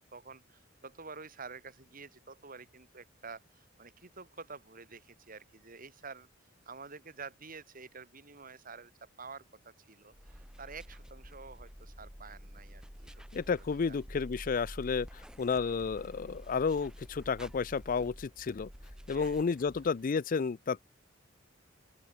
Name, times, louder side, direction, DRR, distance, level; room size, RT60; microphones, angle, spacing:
voice 1, 0.1-6.3 6.6-14.0 19.1-19.5, right 4 dB, 45° right, 3.0 m, -49 dB
sound 1, 10.1-20.0, equal, 5° right, 7.8 m, -49 dB
voice 2, 13.3-15.1 15.4-18.7 19.1-20.8, left 5 dB, 45° left, 0.4 m, -31 dB
open air
head